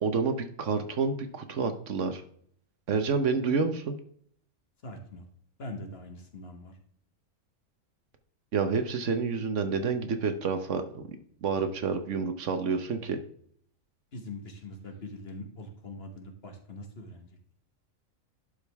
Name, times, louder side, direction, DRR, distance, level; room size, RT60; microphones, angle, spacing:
voice 1, 0.0-2.2 2.9-4.0 8.5-11.1 11.4-13.2, right 5 dB, 65° right, 8 dB, 1.2 m, -29 dB
voice 2, 4.8-5.3 5.6-6.7 14.1-17.3, left 1 dB, 50° left, 4 dB, 1.6 m, -42 dB
11.5 x 5.1 x 3.4 m, 0.62 s
omnidirectional pair, 1.4 m